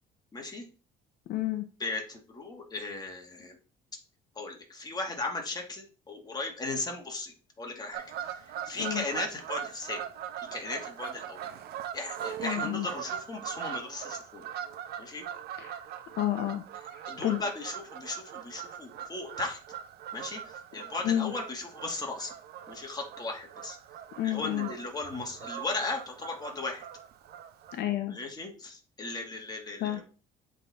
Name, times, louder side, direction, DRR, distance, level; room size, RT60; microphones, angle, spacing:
voice 1, 0.3-0.7 1.8-3.6 4.4-10.0 10.5-11.4 11.9-14.5 15.0-15.2 17.1-19.6 20.1-22.3 22.7-23.8 24.2-26.8 28.1-30.0, left 3 dB, 25° left, 1 dB, 2.1 m, -37 dB
voice 2, 1.3-1.7 8.8-9.0 12.4-12.9 15.6-15.8 16.2-16.6 16.9-17.4 20.7-21.3 24.2-24.7 27.7-28.2 29.8-30.0, left 12 dB, 80° left, 6 dB, 0.9 m, -30 dB
Fowl / Bird vocalization bird call bird song, 7.9-27.8, right 9 dB, 70° right, 0.9 m, -41 dB
7.7 x 4.0 x 4.3 m, 0.35 s
cardioid pair, 110°, 17 cm